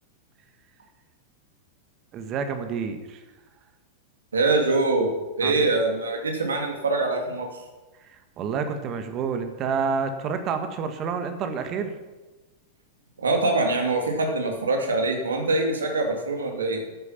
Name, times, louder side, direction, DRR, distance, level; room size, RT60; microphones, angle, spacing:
voice 1, 2.1-3.2 5.4-5.6 8.0-11.9, right 6 dB, 35° right, 8 dB, 1.5 m, -29 dB
voice 2, 4.3-5.1 5.4-7.5 13.2-16.8, right 2 dB, 75° right, 3 dB, 2.7 m, -24 dB
13.0 x 9.8 x 5.9 m, 1.2 s
figure-of-eight pair, 95°, 0 cm